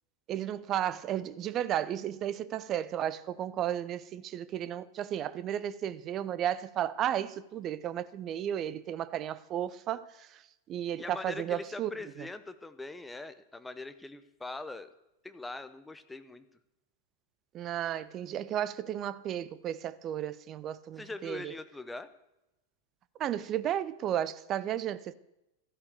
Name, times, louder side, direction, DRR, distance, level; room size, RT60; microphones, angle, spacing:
voice 1, 0.3-10.4 10.7-12.3 17.5-21.6 23.2-25.1, right 10 dB, 30° right, 0.7 m, -34 dB
voice 2, 11.0-14.9 15.2-16.5 21.0-22.1, left 2 dB, 10° left, 1.0 m, -42 dB
13.5 x 11.0 x 7.9 m
figure-of-eight pair, 90°, 0 cm